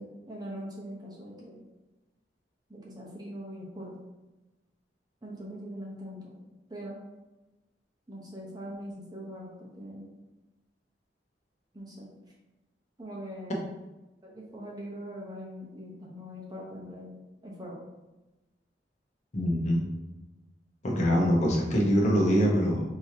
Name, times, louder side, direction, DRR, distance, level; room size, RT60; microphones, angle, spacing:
voice 1, 0.0-1.6 2.7-4.0 5.2-6.4 6.7-7.0 8.1-10.1 11.7-12.1 13.0-13.7 14.2-17.8, equal, 20° right, -3 dB, 0.8 m, -42 dB
voice 2, 19.3-19.8 20.8-22.8, equal, 40° left, -3 dB, 0.9 m, -24 dB
5.1 x 3.0 x 2.7 m, 1.1 s
head